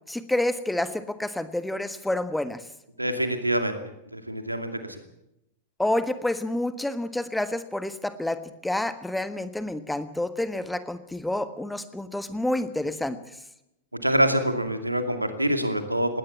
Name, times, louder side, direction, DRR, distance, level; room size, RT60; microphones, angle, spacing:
voice 1, 0.1-2.6 5.8-13.2, left 1 dB, 5° left, 12 dB, 1.4 m, -28 dB
voice 2, 3.0-3.8 4.1-5.0 14.0-16.2, right 1 dB, 85° right, 7 dB, 2.4 m, -25 dB
20.0 x 18.0 x 7.3 m, 0.86 s
figure-of-eight pair, 95°, 0 cm